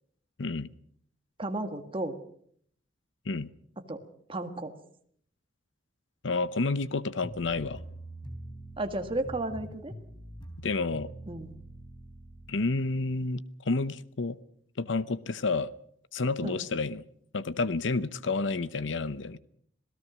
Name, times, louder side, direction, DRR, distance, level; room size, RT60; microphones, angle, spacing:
voice 1, 0.4-0.7 3.3-3.5 6.2-7.8 10.6-11.1 12.5-14.4 14.8-15.7 16.1-17.0 17.3-19.4, left 3 dB, 75° left, 15 dB, 0.8 m, -30 dB
voice 2, 1.4-2.2 3.9-4.0 4.3-4.7 8.8-9.9 11.3-11.5 16.4-16.6, right 2 dB, 30° right, 6 dB, 1.8 m, -33 dB
sound 1, 7.2-12.6, right 1 dB, 25° left, 3.8 m, -44 dB
26.5 x 17.5 x 6.2 m, 0.65 s
head